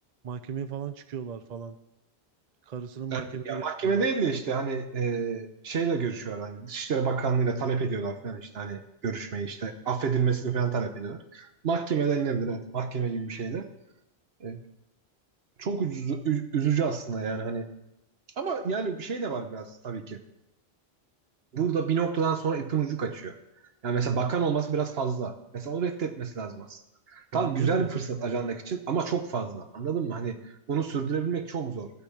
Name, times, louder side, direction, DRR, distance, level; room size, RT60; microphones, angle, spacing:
voice 1, 0.2-1.8 2.7-4.1 27.3-27.9, right 7 dB, 50° right, 11 dB, 0.6 m, -36 dB
voice 2, 3.1-13.7 14.4-14.6 15.6-17.7 18.4-20.2 21.5-23.4 23.8-26.8 27.1-31.9, right 6 dB, 70° right, 8 dB, 1.2 m, -29 dB
12.0 x 5.9 x 8.6 m, 0.90 s
omnidirectional pair, 1.1 m